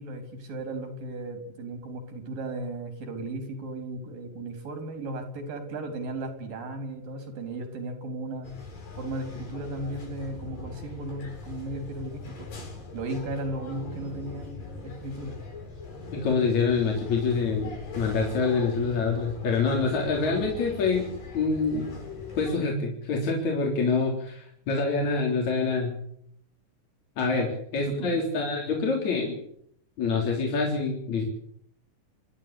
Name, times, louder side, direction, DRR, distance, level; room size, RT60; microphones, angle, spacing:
voice 1, 0.0-8.5 9.0-12.3 12.9-15.4 27.3-27.5 27.9-28.2, right 2 dB, 85° right, 6 dB, 5.7 m, -35 dB
sound 1, 8.4-22.5, left 3 dB, 90° left, 9.9 m, -41 dB
voice 2, 16.1-21.1 21.3-21.9 22.4-26.0 27.2-27.5 27.7-29.4 30.0-31.2, left 4 dB, 55° left, 0 dB, 5.0 m, -26 dB
29.0 x 11.5 x 8.5 m, 0.69 s
omnidirectional pair, 3.9 m